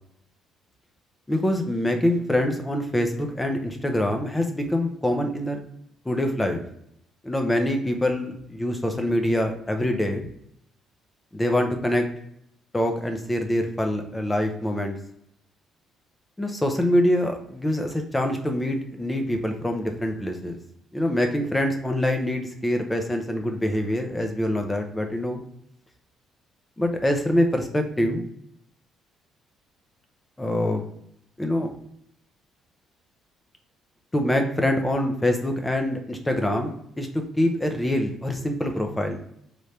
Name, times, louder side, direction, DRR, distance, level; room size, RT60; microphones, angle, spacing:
voice 1, 1.3-5.6 6.1-6.6 7.2-10.3 11.3-12.1 12.7-15.0 16.4-20.6 20.9-25.4 26.8-28.2 30.4-30.9 31.4-31.7 34.1-39.2, left 1 dB, 10° left, 4 dB, 0.5 m, -25 dB
3.3 x 2.5 x 4.2 m, 0.73 s
cardioid pair, 145°, 0 cm